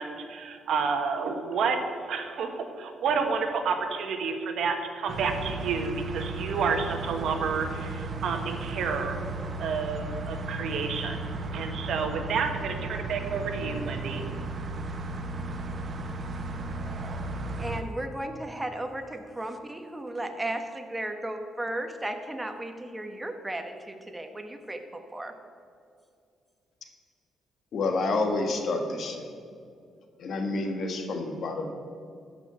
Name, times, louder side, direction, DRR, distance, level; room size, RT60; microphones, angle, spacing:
voice 1, 0.0-1.8 2.1-9.2 9.6-11.2 11.5-14.3, right 5 dB, 70° right, 5 dB, 1.4 m, -30 dB
sound 1, 5.1-17.8, right 2 dB, 45° right, 1.1 m, -35 dB
voice 2, 17.6-25.3, right 1 dB, 15° right, 6 dB, 1.3 m, -35 dB
voice 3, 27.7-29.3 30.2-31.7, left 3 dB, 60° left, 5 dB, 1.6 m, -29 dB
13.0 x 6.0 x 8.1 m, 2.4 s
cardioid pair, 90°, 0 cm